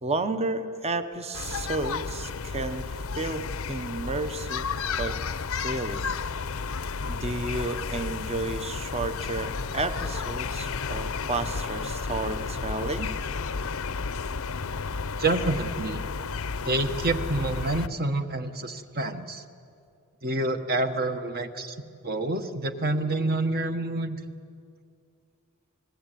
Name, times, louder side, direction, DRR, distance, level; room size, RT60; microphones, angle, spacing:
voice 1, 0.0-4.7 5.0-5.2 5.6-6.1 7.0-13.1, right 2 dB, 30° right, 10 dB, 1.1 m, -32 dB
sound 1, 1.3-17.9, left 5 dB, 70° left, 0.7 m, -32 dB
voice 2, 15.2-16.0 16.6-19.4 20.2-21.7 22.0-24.2, right 2 dB, 45° right, 7 dB, 1.5 m, -28 dB
28.0 x 20.5 x 9.3 m, 2.4 s
head